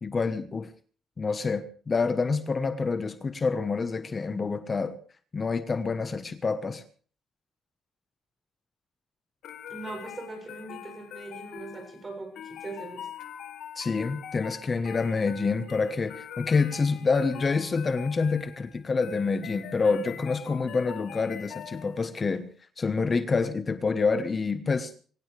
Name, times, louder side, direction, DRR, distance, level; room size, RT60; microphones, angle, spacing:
voice 1, 0.0-0.7 1.2-5.0 5.3-6.8 13.7-22.5 22.8-24.9, left 4 dB, 35° left, 11 dB, 1.2 m, -27 dB
sound 1, 9.4-22.2, left 9 dB, 80° left, 1.9 m, -43 dB
voice 2, 9.7-13.1, right 3 dB, 30° right, 5 dB, 7.3 m, -40 dB
24.0 x 16.5 x 3.4 m, 0.42 s
cardioid pair, 90°, 0 cm